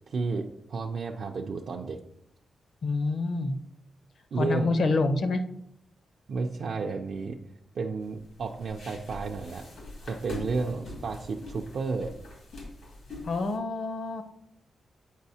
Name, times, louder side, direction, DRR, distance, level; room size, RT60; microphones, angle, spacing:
voice 1, 0.1-2.0 4.3-4.7 6.3-7.4 7.7-9.7 10.0-12.1, right 4 dB, 60° right, 2 dB, 0.4 m, -32 dB
voice 2, 2.8-3.6 4.4-5.4 13.2-14.2, left 3 dB, 55° left, 8 dB, 0.6 m, -27 dB
sound 1, 8.0-13.6, left 2 dB, 85° left, 1.9 m, -43 dB
8.1 x 4.8 x 2.7 m, 0.76 s
wide cardioid pair, 160°, 0 cm